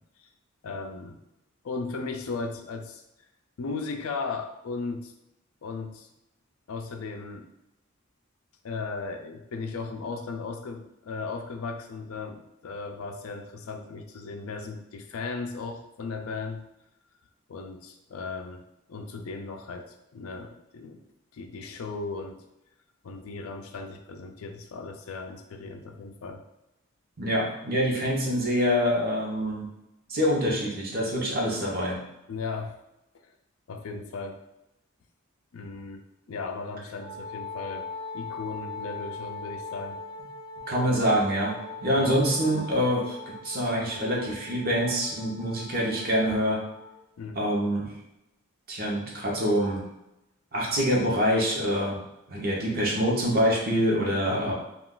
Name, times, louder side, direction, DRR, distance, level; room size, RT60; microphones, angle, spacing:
voice 1, 0.6-1.2 1.6-3.0 3.6-5.1 5.6-6.1 6.7-7.5 8.6-16.6 17.5-18.6 18.9-21.0 21.3-22.4 23.0-26.4 32.3-32.8 33.7-34.4 35.5-37.9 38.1-40.0 42.0-42.2 47.2-47.4 54.3-54.5, left 4 dB, 85° left, 5 dB, 0.4 m, -36 dB
voice 2, 27.2-29.6 30.1-32.0 40.7-43.2 43.4-46.6 47.3-47.9 48.7-49.8 50.5-52.0 52.3-54.5, equal, 45° right, -2 dB, 0.8 m, -25 dB
Wind instrument woodwind instrument, 37.0-47.0, left 3 dB, 20° left, 0.4 m, -40 dB
2.4 x 2.4 x 3.7 m, 0.89 s
head